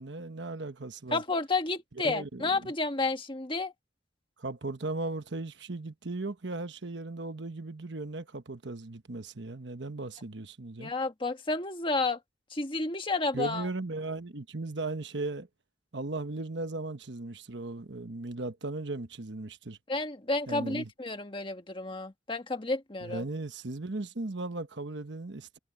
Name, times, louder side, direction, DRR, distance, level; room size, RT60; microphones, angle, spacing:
voice 1, 0.0-1.2 2.0-2.7 4.4-10.9 13.3-15.5 15.9-19.8 20.5-20.9 23.0-25.6, right 2 dB, 65° right, 1.2 m, -37 dB
voice 2, 1.1-3.7 10.8-12.2 12.5-13.7 19.9-23.2, left 3 dB, 25° left, 1.6 m, -31 dB
head